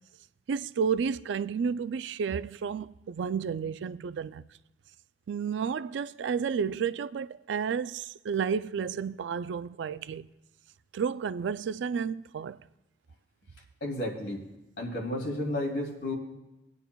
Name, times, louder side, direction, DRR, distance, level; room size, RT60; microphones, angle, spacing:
voice 1, 0.5-4.4 5.3-10.3 10.9-12.6, right 6 dB, 85° right, 0.3 m, -31 dB
voice 2, 13.8-14.4 14.8-16.1, left 1 dB, 85° left, 2.7 m, -32 dB
21.5 x 9.5 x 2.3 m
head